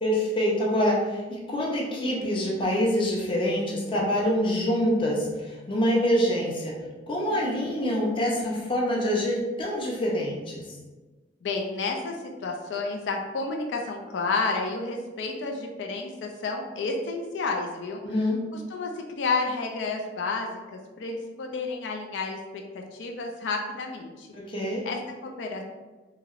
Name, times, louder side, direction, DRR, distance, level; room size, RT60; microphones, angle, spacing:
voice 1, 0.0-6.8 7.1-10.6 18.0-18.4 24.3-24.8, equal, 30° left, -3 dB, 0.6 m, -26 dB
voice 2, 7.3-7.8 11.4-12.2 12.4-18.0 18.5-18.9 19.2-22.4 22.7-24.3 24.9-25.6, left 3 dB, 90° left, 2 dB, 0.4 m, -31 dB
3.0 x 2.8 x 2.5 m, 1.3 s
head